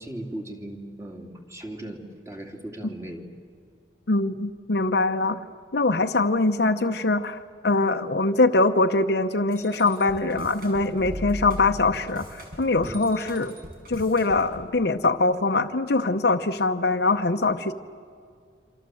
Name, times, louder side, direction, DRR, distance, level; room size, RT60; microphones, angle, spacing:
voice 1, 0.0-3.2 12.8-13.1, right 1 dB, 15° right, 3 dB, 3.0 m, -38 dB
voice 2, 4.1-5.4 5.7-13.5 13.9-17.7, left 3 dB, 65° left, 5 dB, 0.8 m, -23 dB
sound 1, 9.5-14.6, equal, 55° right, 6.0 m, -38 dB
27.5 x 26.5 x 7.8 m, 2.3 s
head